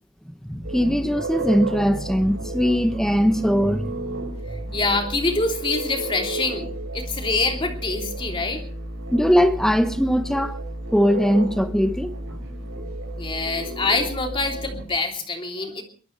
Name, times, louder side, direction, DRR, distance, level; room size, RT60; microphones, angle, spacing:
voice 1, 0.5-3.9 9.1-10.6 10.9-12.2, equal, ahead, 0.8 m, -20 dB
sound 1, 0.6-14.8, right 2 dB, 65° right, 6.0 m, -32 dB
voice 2, 4.5-6.7 6.9-8.6 13.2-15.8, left 3 dB, 25° left, 3.1 m, -25 dB
23.0 x 19.5 x 3.3 m
head